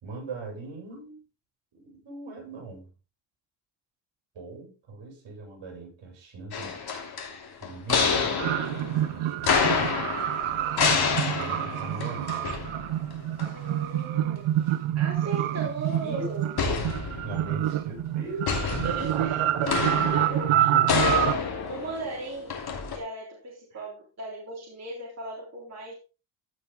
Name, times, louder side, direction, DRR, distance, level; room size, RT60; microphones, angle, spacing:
voice 1, 0.0-1.2 1.7-2.9 4.3-6.8 7.6-8.5 8.9-9.7 11.3-12.5 15.9-16.3 16.6-16.9 17.2-21.1 23.7-23.8, right 3 dB, 65° right, 6.7 m, -38 dB
sound 1, 6.5-13.1 13.4-13.5 16.6-17.6 18.5-23.0, left 5 dB, 50° left, 2.9 m, -28 dB
talkbox flyer, 8.4-21.3, right 12 dB, 85° right, 0.9 m, -27 dB
voice 2, 13.5-14.6 15.0-16.5 18.6-19.4 19.8-20.7 21.1-21.4 21.7-22.7 22.9-25.9, right 2 dB, 30° right, 3.6 m, -37 dB
15.0 x 5.7 x 3.6 m
cardioid pair, 130°, 48 cm